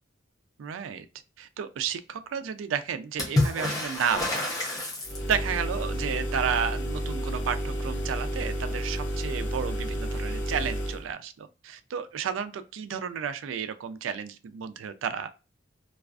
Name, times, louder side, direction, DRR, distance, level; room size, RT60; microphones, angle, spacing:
voice 1, 0.6-1.1 1.4-4.5 5.2-15.3, right 7 dB, 90° right, 0.3 m, -32 dB
Water / Splash splatter, 3.2-5.6 8.9-9.0 9.2-10.0 11.1-11.2, left 2 dB, 20° left, 0.6 m, -29 dB
sound 1, 5.0-11.1, equal, 70° left, 0.6 m, -31 dB
2.3 x 2.3 x 2.2 m
head